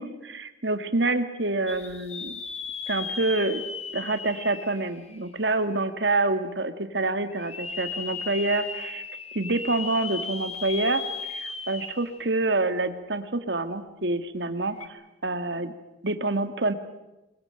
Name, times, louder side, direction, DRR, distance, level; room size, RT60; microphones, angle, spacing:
voice 1, 0.0-2.4 2.9-3.6 3.9-9.0 9.3-11.0 11.3-15.7 16.0-16.7, right 2 dB, 65° right, 10 dB, 1.8 m, -27 dB
sound 1, 1.7-5.6 6.1-6.2 7.3-12.3 12.6-12.7 14.7-14.9, left 5 dB, 35° left, 1.7 m, -36 dB
22.0 x 21.0 x 8.9 m, 0.99 s
head